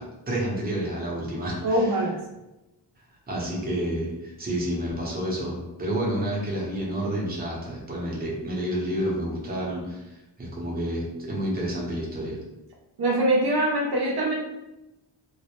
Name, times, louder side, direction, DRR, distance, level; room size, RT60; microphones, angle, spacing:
voice 1, 0.0-2.0 3.3-12.4, right 1 dB, 20° right, -4 dB, 0.7 m, -29 dB
voice 2, 1.6-2.2 13.0-14.3, right 1 dB, 65° right, -3 dB, 0.6 m, -23 dB
2.2 x 2.0 x 2.9 m, 0.97 s
wide cardioid pair, 130°, 42 cm